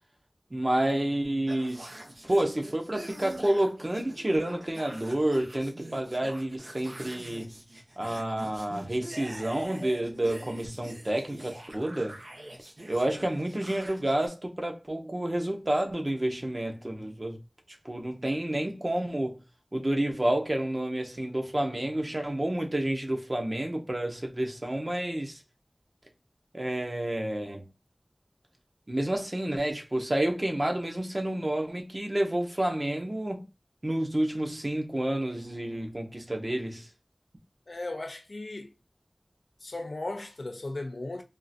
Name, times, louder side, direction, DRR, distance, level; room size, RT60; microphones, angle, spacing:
voice 1, 0.5-1.9 2.2-7.5 8.0-12.2 12.9-17.4 17.8-19.4 19.7-25.4 26.5-27.6 28.9-33.5 33.8-36.9, right 1 dB, 45° right, 0.9 m, -29 dB
sound 1, 1.5-14.3, right 1 dB, 85° right, 0.9 m, -45 dB
voice 2, 37.7-38.7 39.6-41.2, left 2 dB, 90° left, 0.7 m, -36 dB
3.6 x 2.5 x 2.6 m
wide cardioid pair, 45°, 0 cm